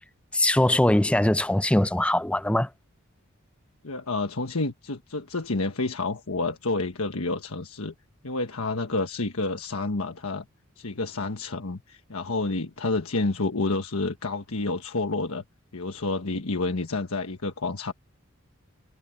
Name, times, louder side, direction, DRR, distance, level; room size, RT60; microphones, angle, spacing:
voice 1, 0.3-2.7, left 1 dB, 5° left, 0.5 m, -21 dB
voice 2, 3.8-7.9 8.2-10.4 10.8-15.4 15.7-17.9, left 3 dB, 85° left, 1.3 m, -29 dB
head